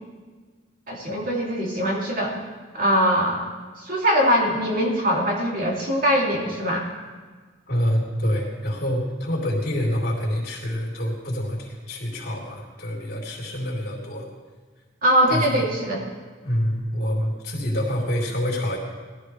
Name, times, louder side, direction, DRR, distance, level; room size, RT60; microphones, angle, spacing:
voice 1, 0.9-2.3 2.7-3.4 3.8-6.9 15.0-16.0, equal, 45° right, -3 dB, 2.9 m, -22 dB
voice 2, 7.7-14.3 15.3-15.6 16.4-18.8, equal, 55° left, -3 dB, 4.0 m, -26 dB
20.5 x 15.0 x 3.4 m, 1.4 s
head